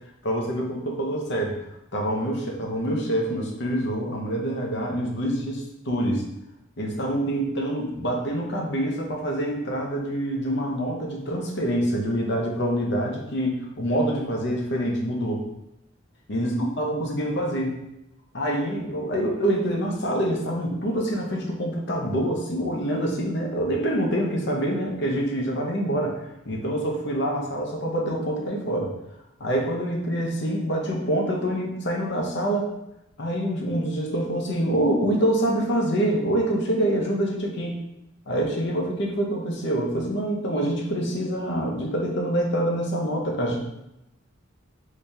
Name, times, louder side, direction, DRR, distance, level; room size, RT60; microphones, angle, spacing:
voice 1, 0.2-1.6 1.9-6.2 6.8-15.5 16.3-17.8 18.3-26.2 26.5-28.9 29.4-32.7 33.2-37.7 38.3-43.6, right 1 dB, 60° left, 0 dB, 0.8 m, -26 dB
4.1 x 3.2 x 2.7 m, 0.86 s
head